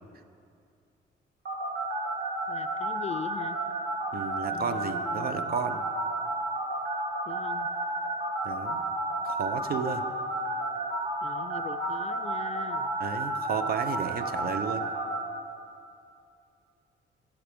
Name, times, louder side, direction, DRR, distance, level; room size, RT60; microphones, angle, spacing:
sound 1, 1.5-15.2, right 2 dB, 65° right, 2.6 m, -31 dB
voice 1, 2.5-3.6 4.5-5.6 7.3-7.7 11.2-12.9, left 7 dB, 35° left, 11 dB, 0.4 m, -41 dB
voice 2, 4.1-5.8 8.4-8.8 9.2-10.1 13.0-14.9, right 7 dB, 50° right, 9 dB, 0.6 m, -33 dB
14.5 x 6.0 x 5.1 m, 2.4 s
cardioid pair, 90°, 20 cm